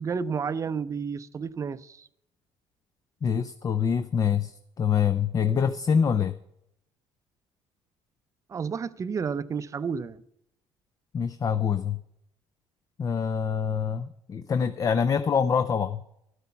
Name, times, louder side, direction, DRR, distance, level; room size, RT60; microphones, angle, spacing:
voice 1, 0.0-2.1 8.5-10.2, right 6 dB, 30° right, 0.6 m, -31 dB
voice 2, 3.2-6.4 11.1-12.0 13.0-16.0, left 7 dB, 35° left, 0.5 m, -25 dB
12.0 x 8.2 x 5.7 m
cardioid pair, 95°, 10 cm